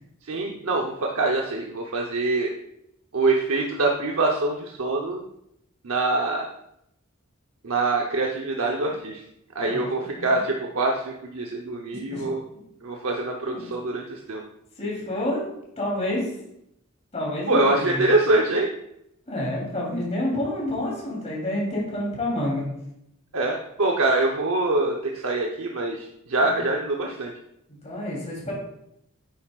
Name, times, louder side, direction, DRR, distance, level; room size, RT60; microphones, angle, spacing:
voice 1, 0.2-2.5 3.1-5.2 5.8-6.4 7.6-9.2 9.5-12.4 12.8-14.4 17.5-18.7 23.3-27.3, right 2 dB, 75° right, 0 dB, 0.9 m, -24 dB
voice 2, 9.6-10.4 11.9-12.2 13.5-13.7 14.8-15.5 15.8-16.3 17.1-18.1 19.3-22.6 26.4-26.6 27.7-28.5, left 1 dB, 30° left, -4 dB, 3.2 m, -29 dB
9.3 x 9.2 x 2.5 m, 0.79 s
head